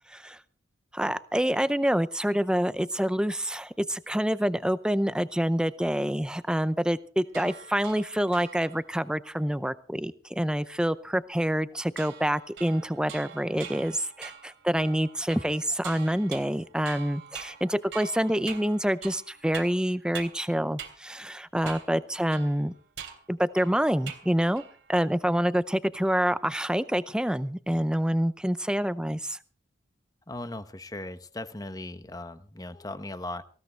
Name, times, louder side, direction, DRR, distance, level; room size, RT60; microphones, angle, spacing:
voice 1, 0.1-0.4 0.9-22.7 23.3-24.6 24.9-29.4, equal, 5° right, 14 dB, 0.6 m, -27 dB
sound 1, 7.3-8.9 12.0-20.5 20.8-21.0 21.6-22.0 22.3-24.3 24.6-24.9, right 7 dB, 90° right, 3.1 m, -44 dB
voice 2, 30.3-33.4, left 2 dB, 20° left, 11 dB, 0.9 m, -38 dB
19.5 x 16.5 x 3.4 m, 0.40 s
head